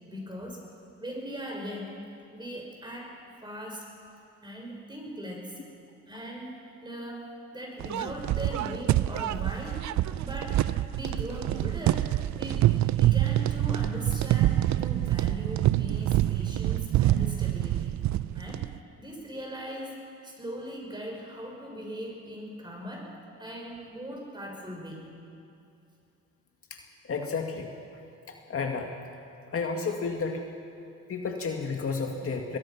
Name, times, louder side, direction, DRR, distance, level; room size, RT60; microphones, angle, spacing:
voice 1, 0.1-0.7 1.0-2.0 2.3-3.9 4.4-5.6 6.1-6.5 6.8-9.9 10.2-10.7 10.9-18.0 18.3-18.7 19.0-23.1 23.4-25.1, equal, 15° right, 0 dB, 6.2 m, -39 dB
sound 1, 7.8-18.8, right 14 dB, 70° right, 0.6 m, -26 dB
voice 2, 27.0-27.7 28.3-28.9 29.5-30.4 31.1-32.6, left 4 dB, 50° left, 2 dB, 2.0 m, -31 dB
21.5 x 21.0 x 6.0 m, 2.6 s
cardioid pair, 90°, 30 cm